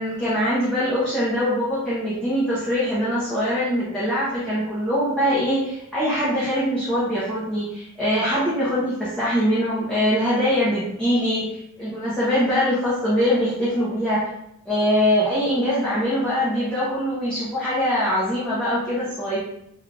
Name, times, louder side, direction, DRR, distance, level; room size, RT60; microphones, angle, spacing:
voice 1, 0.0-14.2 14.7-19.4, equal, 5° left, -10 dB, 0.7 m, -23 dB
3.6 x 2.4 x 3.3 m, 0.80 s
head